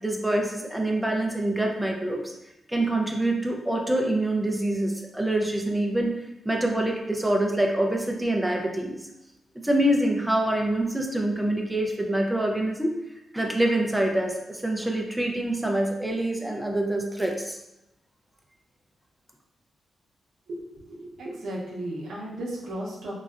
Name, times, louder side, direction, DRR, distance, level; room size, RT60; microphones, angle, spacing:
voice 1, 0.0-2.3 2.7-6.2 6.5-9.0 9.6-13.0 13.3-17.6, right 1 dB, 5° right, 1 dB, 0.4 m, -25 dB
voice 2, 20.5-23.1, right 1 dB, 80° right, -5 dB, 0.6 m, -35 dB
3.8 x 2.1 x 2.4 m, 0.89 s
wide cardioid pair, 135°, 0 cm